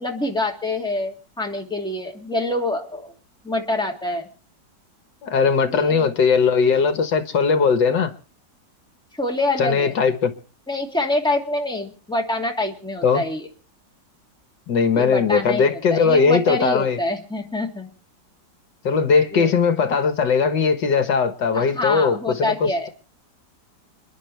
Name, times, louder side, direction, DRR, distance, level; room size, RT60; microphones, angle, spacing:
voice 1, 0.0-3.1 3.4-4.3 5.7-6.1 9.2-9.9 10.7-13.5 14.9-17.9 19.3-19.5 21.5-22.9, left 2 dB, ahead, 2.6 m, -26 dB
voice 2, 5.2-8.1 9.6-10.3 13.0-13.2 14.7-17.0 18.8-22.9, left 5 dB, 75° left, 2.0 m, -19 dB
29.0 x 10.5 x 3.3 m
omnidirectional pair, 2.0 m